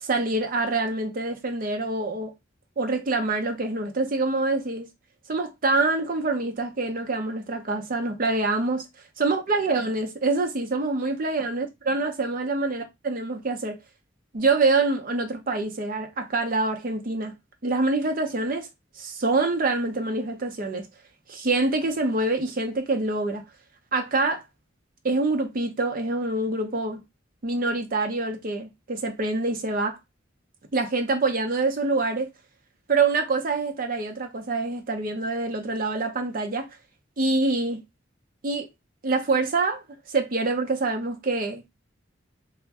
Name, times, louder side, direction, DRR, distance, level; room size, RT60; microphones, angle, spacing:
voice 1, 0.0-2.3 2.8-4.9 5.3-8.9 9.2-13.8 14.3-17.3 17.6-18.7 19.0-20.9 21.3-23.4 23.9-24.4 25.0-27.0 27.4-30.0 30.7-32.3 32.9-36.7 37.2-37.8 38.4-38.7 39.0-39.8 40.1-41.7, right 3 dB, 45° right, 0.6 m, -25 dB
2.5 x 2.1 x 3.4 m
head